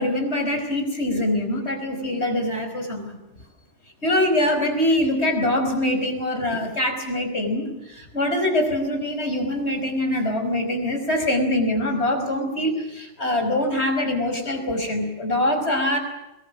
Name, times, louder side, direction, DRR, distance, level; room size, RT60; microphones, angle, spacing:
voice 1, 0.0-3.2 4.0-16.0, left 1 dB, 70° left, 4 dB, 5.4 m, -24 dB
25.0 x 22.0 x 7.3 m, 0.94 s
omnidirectional pair, 1.2 m